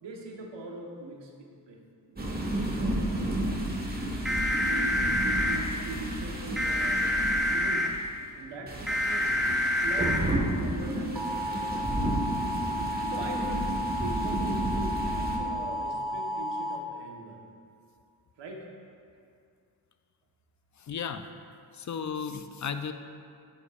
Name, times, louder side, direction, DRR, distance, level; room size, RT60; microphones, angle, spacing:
voice 1, 0.0-3.6 4.3-7.1 7.5-7.9 8.3-9.3 9.8-11.9 13.0-17.5 18.4-18.7, right 2 dB, 70° right, 0 dB, 1.4 m, -42 dB
sound 1, 2.2-8.1 8.7-15.4, right 1 dB, 20° right, 1.7 m, -32 dB
sound 2, 4.3-5.6 6.6-7.9 8.9-10.2 11.2-16.8, left 1 dB, ahead, 1.1 m, -29 dB
voice 2, 20.8-21.3 21.7-22.9, left 6 dB, 40° left, 9 dB, 0.6 m, -34 dB
10.5 x 8.3 x 2.6 m, 2.4 s
supercardioid pair, 60°, 45 cm